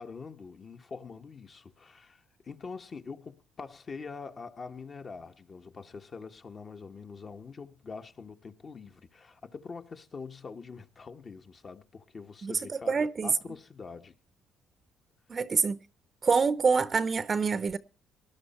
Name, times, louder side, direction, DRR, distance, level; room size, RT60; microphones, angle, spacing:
voice 1, 0.0-14.1, left 4 dB, 40° left, 1.3 m, -44 dB
voice 2, 12.9-13.3 15.3-15.8 16.2-17.8, right 5 dB, 35° right, 0.8 m, -26 dB
19.0 x 11.5 x 4.3 m
cardioid pair, 85°, 0 cm